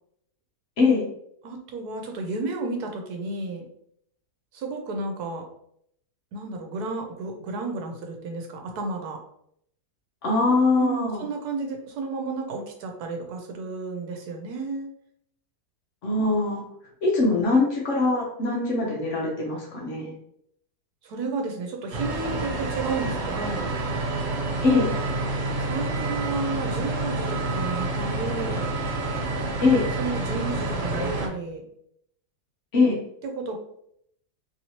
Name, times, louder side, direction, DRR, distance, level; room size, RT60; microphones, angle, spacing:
voice 1, 1.4-3.6 4.5-5.4 6.3-9.2 10.8-14.9 21.0-23.6 25.6-28.7 30.0-31.6 33.2-33.6, right 3 dB, 75° right, 3 dB, 1.2 m, -32 dB
voice 2, 10.2-11.2 16.0-16.6 17.0-20.1 24.6-24.9 29.6-29.9 32.7-33.0, left 3 dB, 60° left, -2 dB, 0.9 m, -22 dB
sound 1, 21.9-31.3, right 2 dB, 55° right, 0.8 m, -28 dB
3.0 x 2.9 x 2.7 m, 0.71 s
omnidirectional pair, 1.7 m